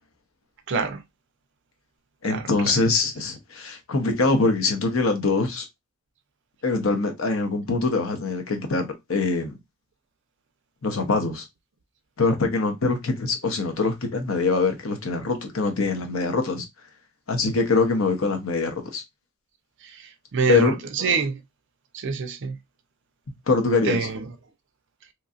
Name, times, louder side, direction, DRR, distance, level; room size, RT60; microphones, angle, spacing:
voice 1, 0.7-1.0 2.2-2.7 19.8-21.4 21.9-22.6 23.8-24.3, right 4 dB, 60° right, 0.5 m, -26 dB
voice 2, 2.2-5.7 6.6-9.5 10.8-11.4 12.2-16.6 17.3-19.0 20.5-20.8 23.5-24.0, left 3 dB, 70° left, 0.8 m, -23 dB
3.0 x 2.7 x 2.4 m
head